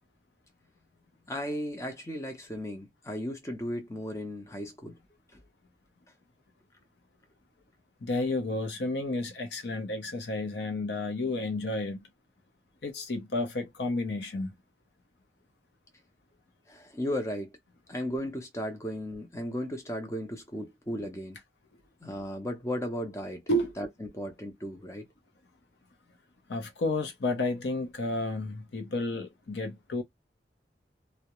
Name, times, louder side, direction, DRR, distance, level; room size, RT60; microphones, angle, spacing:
voice 1, 1.3-4.9 16.7-17.5 17.9-21.4 22.0-23.4 23.8-25.0, equal, 15° left, 0.5 m, -35 dB
voice 2, 8.0-12.1 12.8-14.5 23.5-23.7 26.5-30.0, left 2 dB, 70° left, 0.6 m, -31 dB
2.3 x 2.1 x 2.9 m
head